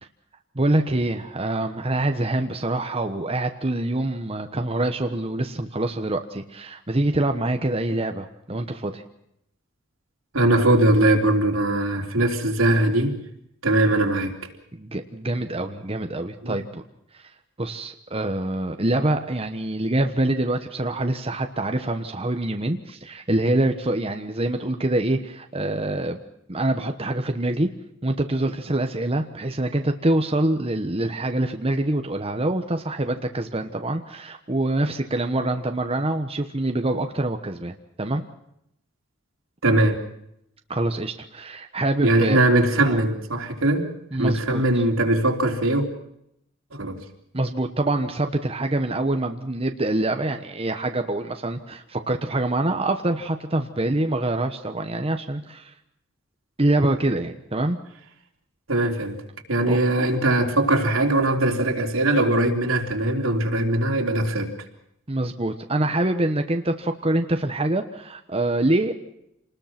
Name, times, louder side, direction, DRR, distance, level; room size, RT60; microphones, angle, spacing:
voice 1, 0.5-9.0 14.7-16.8 17.6-26.2 26.5-27.7 28.0-38.2 40.7-42.4 42.9-43.0 44.1-44.6 47.3-55.7 56.6-57.8 59.7-59.8 65.1-68.9, right 1 dB, 30° right, 5 dB, 1.2 m, -25 dB
voice 2, 10.3-13.2 13.6-14.3 16.4-16.6 39.6-40.0 42.0-43.9 44.2-45.9 46.7-47.0 58.7-59.2 59.5-64.5, right 1 dB, 85° right, 2 dB, 3.5 m, -21 dB
27.5 x 20.5 x 6.0 m, 0.77 s
head